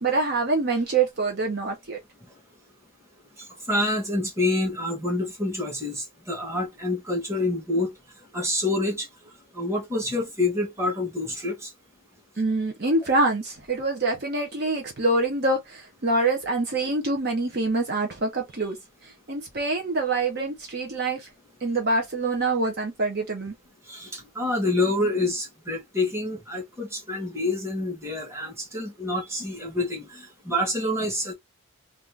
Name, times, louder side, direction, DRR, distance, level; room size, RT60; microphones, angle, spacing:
voice 1, 0.0-2.0 12.4-18.8 19.3-21.3 21.6-23.5, right 2 dB, 50° right, 0.7 m, -25 dB
voice 2, 3.7-7.9 8.3-9.1 9.5-11.7 23.9-31.3, left 2 dB, 15° right, 1.2 m, -27 dB
2.7 x 2.5 x 3.3 m
head